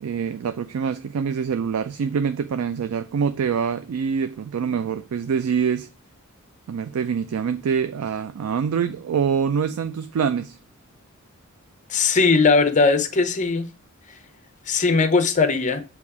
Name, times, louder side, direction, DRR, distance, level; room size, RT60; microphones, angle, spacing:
voice 1, 0.0-5.9 6.7-10.6, right 6 dB, 80° right, 0.4 m, -25 dB
voice 2, 11.9-13.7 14.7-15.8, left 4 dB, 35° left, 0.6 m, -19 dB
7.1 x 2.9 x 4.7 m
head